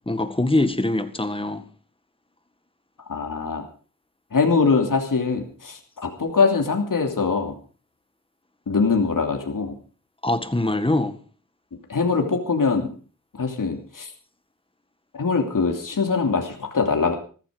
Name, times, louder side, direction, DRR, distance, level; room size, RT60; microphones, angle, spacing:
voice 1, 0.0-1.6 10.2-11.2, left 2 dB, 15° left, 1.8 m, -23 dB
voice 2, 3.1-3.6 4.3-7.5 8.7-9.7 11.9-12.9 13.4-14.1 15.1-17.2, left 4 dB, 65° left, 3.0 m, -22 dB
15.5 x 14.0 x 5.2 m
wide cardioid pair, 80°, 35 cm